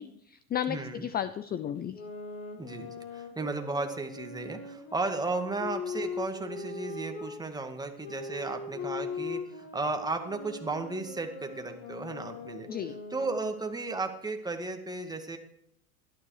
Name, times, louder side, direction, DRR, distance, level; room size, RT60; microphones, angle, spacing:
voice 1, 0.0-2.0 12.7-13.0, left 10 dB, 20° left, 15 dB, 0.6 m, -34 dB
voice 2, 0.7-1.0 2.6-12.7 13.1-15.4, right 3 dB, 10° right, 5 dB, 2.0 m, -34 dB
sound 1, 1.8-7.4 8.0-13.6, left 4 dB, 55° left, 5.7 m, -40 dB
17.0 x 12.5 x 4.9 m, 0.75 s
supercardioid pair, 115°, 42 cm